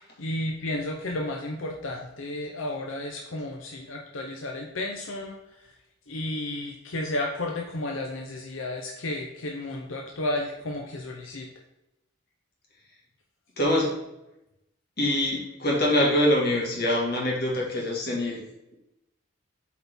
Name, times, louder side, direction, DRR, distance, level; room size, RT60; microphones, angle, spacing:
voice 1, 0.0-5.7 6.1-11.5, left 1 dB, 90° left, 1 dB, 0.8 m, -32 dB
voice 2, 13.6-13.9 15.0-18.4, left 1 dB, 55° left, -3 dB, 2.2 m, -24 dB
8.4 x 4.3 x 3.5 m, 0.89 s
head